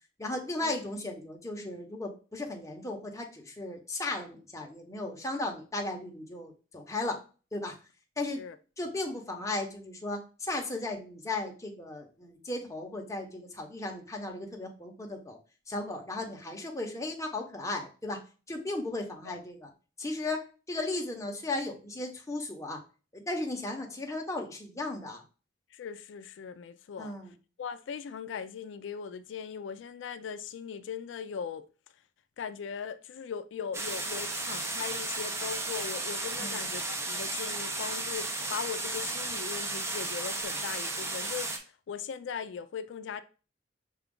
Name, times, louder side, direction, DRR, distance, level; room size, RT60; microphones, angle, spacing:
voice 1, 0.2-7.2 7.5-7.8 8.2-8.4 8.8-15.4 15.7-18.2 18.5-19.7 20.0-22.8 23.1-25.2 27.0-27.3 36.4-36.6, left 2 dB, 15° left, 0.8 m, -36 dB
voice 2, 25.7-27.1 27.6-31.7 32.4-43.2, left 7 dB, 85° left, 0.3 m, -39 dB
sound 1, 33.7-41.6, right 2 dB, 15° right, 0.5 m, -34 dB
5.9 x 2.3 x 3.6 m
head